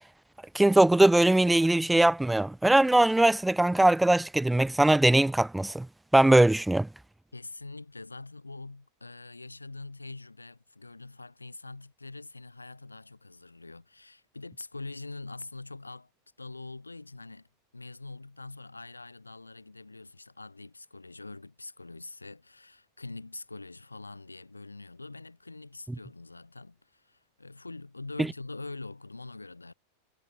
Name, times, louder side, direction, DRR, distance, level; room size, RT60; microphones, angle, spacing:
voice 1, 0.5-5.9 6.1-6.9, right 1 dB, 5° right, 0.4 m, -21 dB
voice 2, 7.3-16.1 16.4-17.5 17.7-29.7, left 3 dB, 80° left, 3.1 m, -44 dB
figure-of-eight pair, 90°, 0 cm